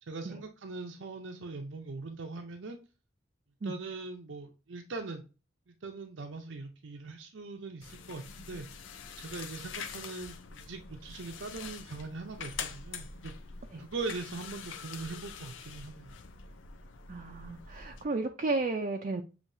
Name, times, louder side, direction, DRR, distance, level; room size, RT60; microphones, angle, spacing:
voice 1, 0.1-2.8 3.6-5.2 5.7-8.7 9.2-13.3 13.8-16.2, right 3 dB, 85° right, 0.6 m, -41 dB
sound 1, 7.8-18.0, left 6 dB, 85° left, 0.6 m, -45 dB
voice 2, 17.1-19.2, right 3 dB, 40° right, 0.4 m, -33 dB
7.2 x 2.8 x 2.7 m
head